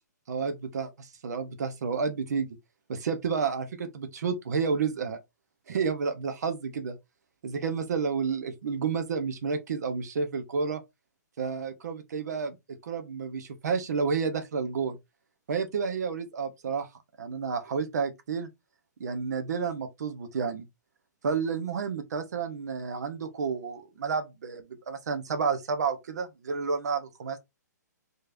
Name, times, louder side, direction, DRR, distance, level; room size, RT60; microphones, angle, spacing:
voice 1, 0.3-2.5 2.9-5.2 5.7-7.0 7.4-10.8 11.4-15.0 15.5-16.9 17.2-18.5 19.0-20.7 21.2-27.4, right 5 dB, 65° right, 0.8 m, -30 dB
4.6 x 3.1 x 2.6 m
figure-of-eight pair, 125°, 10 cm